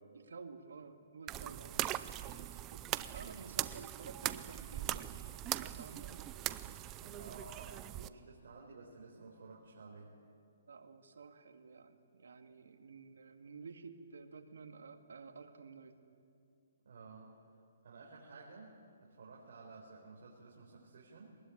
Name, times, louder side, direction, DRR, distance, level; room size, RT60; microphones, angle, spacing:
voice 1, 0.1-1.7 2.3-2.9 3.1-6.8 10.7-16.0, right 4 dB, 85° right, 6 dB, 2.1 m, -52 dB
sound 1, 1.3-8.1, right 14 dB, 20° right, 0.5 m, -40 dB
voice 2, 1.5-1.9 2.9-3.1 7.0-10.1 16.8-17.3 17.8-18.7 19.0-21.4, right 4 dB, 60° right, -3 dB, 4.4 m, -54 dB
23.0 x 20.0 x 8.7 m, 2.5 s
hypercardioid pair, 165°, 0 cm